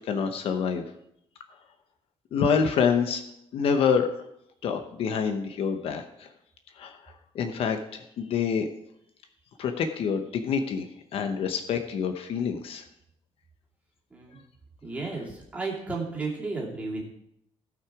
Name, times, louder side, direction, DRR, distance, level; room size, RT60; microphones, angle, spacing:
voice 1, 0.0-0.8 2.3-3.2 3.5-4.1 4.6-6.3 6.8-7.0 7.3-8.7 9.6-10.9 11.1-12.8, left 6 dB, 60° left, 7 dB, 0.9 m, -26 dB
voice 2, 14.1-14.4 14.8-17.0, right 3 dB, 10° right, -4 dB, 2.7 m, -33 dB
16.5 x 6.0 x 4.8 m, 0.79 s
cardioid pair, 175°, 11 cm